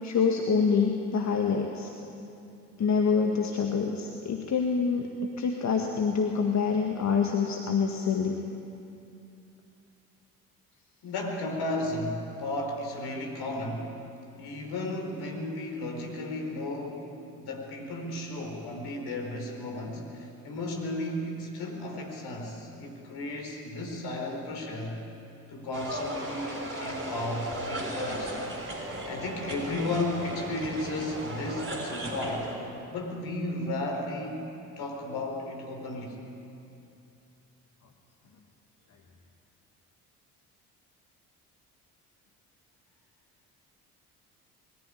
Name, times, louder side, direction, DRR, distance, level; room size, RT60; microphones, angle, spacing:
voice 1, 0.0-1.9 2.8-5.1 5.4-8.4, left 5 dB, 35° left, 2 dB, 1.8 m, -26 dB
voice 2, 11.0-13.9 14.4-25.0 25.5-28.4 29.1-32.5 32.9-34.4 34.8-36.2, left 2 dB, 55° left, 1 dB, 4.5 m, -34 dB
sound 1, 25.7-32.6, right 1 dB, 25° right, 5.8 m, -36 dB
21.5 x 14.5 x 9.6 m, 2.7 s
figure-of-eight pair, 50°, 46 cm